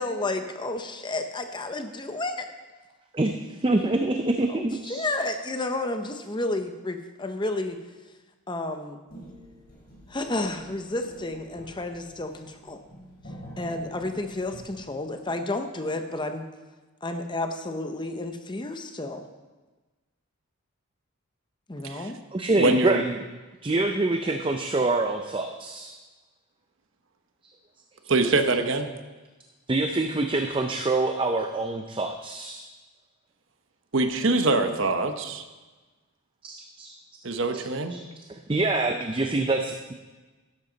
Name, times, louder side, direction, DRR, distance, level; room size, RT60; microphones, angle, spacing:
voice 1, 0.0-2.5 4.9-7.8 8.5-9.0 10.1-12.8 13.6-16.5 17.0-19.3 21.7-22.2, left 2 dB, 20° left, 7 dB, 0.7 m, -31 dB
voice 2, 3.1-5.1 22.3-23.2 23.6-25.9 29.7-32.6 36.4-36.9 37.5-37.6 37.9-38.0 38.3-39.9, right 2 dB, 25° right, 5 dB, 0.5 m, -26 dB
sound 1, 9.1-14.8, equal, 45° left, 4.1 m, -47 dB
voice 3, 22.5-23.0 28.1-28.9 33.9-35.4 37.2-38.0, right 2 dB, 60° right, 7 dB, 0.9 m, -24 dB
12.5 x 11.0 x 4.0 m, 1.2 s
head